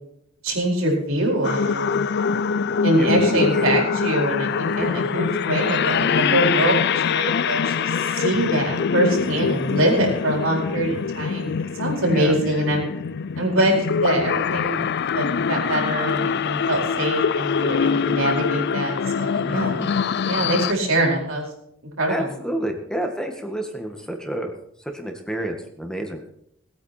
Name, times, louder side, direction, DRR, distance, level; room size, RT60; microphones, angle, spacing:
voice 1, 0.4-2.1 2.8-12.9 13.3-14.8 15.1-19.8 20.3-21.5 22.0-22.3, right 1 dB, 80° right, 0 dB, 4.6 m, -23 dB
sound 1, 1.4-20.7, left 6 dB, 55° left, 0.4 m, -24 dB
voice 2, 3.0-3.6 4.8-5.0 9.2-9.4 12.1-12.4 19.4-19.9 22.1-24.5 24.8-26.2, right 1 dB, 5° left, 4 dB, 1.7 m, -29 dB
19.5 x 8.8 x 4.4 m, 0.75 s
head